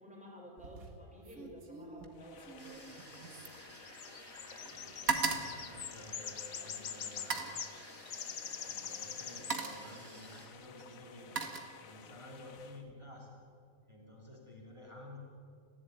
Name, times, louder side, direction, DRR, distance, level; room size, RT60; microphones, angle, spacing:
voice 1, 0.0-3.3, equal, 5° right, -2 dB, 6.3 m, -53 dB
sound 1, 0.6-1.0 1.2-4.4 4.6-6.5 7.1-7.6 8.7-8.8 9.2-9.9 10.8-12.2 12.6-12.9, right 4 dB, 80° right, 2.5 m, -39 dB
sound 2, 2.2-12.8, left 8 dB, 75° left, 1.5 m, -46 dB
sound 3, 2.6-10.5, right 1 dB, 60° right, 4.6 m, -54 dB
voice 2, 4.7-7.6 8.5-11.4 11.8-13.5 13.9-15.2, left 1 dB, 20° right, -1 dB, 3.2 m, -52 dB
29.5 x 15.5 x 9.3 m, 2.4 s
omnidirectional pair, 1.4 m